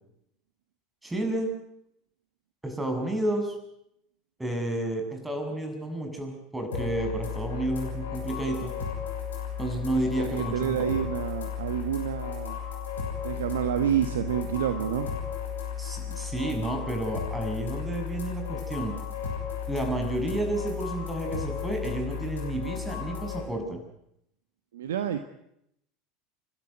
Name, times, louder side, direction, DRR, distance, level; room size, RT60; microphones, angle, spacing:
voice 1, 1.0-1.5 2.6-3.5 4.4-8.7 9.6-10.8 15.8-19.0 19.7-23.8, right 1 dB, 10° right, 4 dB, 6.8 m, -31 dB
sound 1, 6.7-23.4, left 8 dB, 80° left, 6.5 m, -34 dB
voice 2, 10.2-12.6 13.2-15.1 24.7-25.2, right 9 dB, 75° right, 9 dB, 1.3 m, -28 dB
29.5 x 12.5 x 9.4 m, 0.77 s
figure-of-eight pair, 75°, 0 cm